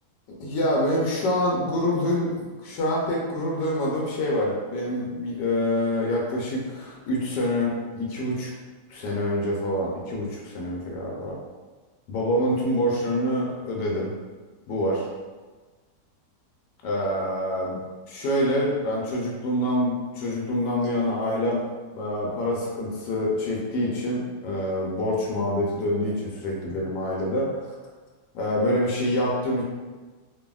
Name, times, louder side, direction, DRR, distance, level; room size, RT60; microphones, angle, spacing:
voice 1, 0.4-2.3 2.7-8.5 8.9-11.4 12.1-14.1 14.7-15.1 16.8-17.8 18.1-21.6 21.9-27.7 28.3-29.6, left 1 dB, 80° left, -3 dB, 1.2 m, -26 dB
2.6 x 2.6 x 2.2 m, 1.3 s
omnidirectional pair, 1.9 m